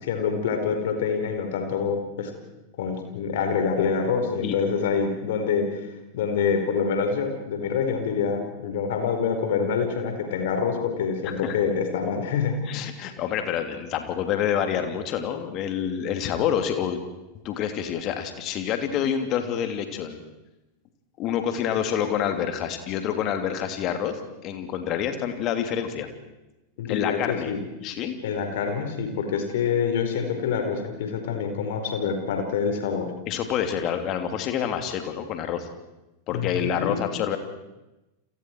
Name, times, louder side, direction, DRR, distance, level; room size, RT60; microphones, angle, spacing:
voice 1, 0.0-2.3 2.8-12.5 26.8-27.6 28.2-33.1 36.3-37.0, left 6 dB, 55° left, 5 dB, 4.7 m, -26 dB
voice 2, 11.2-11.6 12.7-17.0 17.4-20.2 21.2-26.1 26.9-27.5 27.8-28.1 33.3-35.7 36.3-37.4, left 9 dB, 35° left, 7 dB, 3.0 m, -27 dB
30.0 x 27.5 x 4.7 m, 0.98 s
figure-of-eight pair, 90°, 0 cm